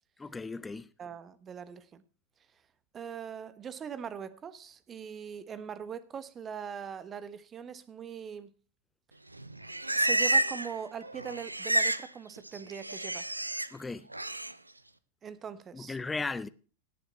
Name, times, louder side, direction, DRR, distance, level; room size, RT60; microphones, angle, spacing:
voice 1, 0.2-0.9 13.7-14.1 15.7-16.5, left 3 dB, 10° left, 0.7 m, -36 dB
voice 2, 1.0-2.0 2.9-8.5 9.9-13.3 15.2-16.0, right 7 dB, 25° right, 1.2 m, -41 dB
Livestock farm animals working animals, 9.3-10.8 11.0-12.1 12.4-13.7 14.1-14.5, right 2 dB, 85° right, 0.7 m, -30 dB
17.5 x 7.0 x 4.2 m
figure-of-eight pair, 90°, 0 cm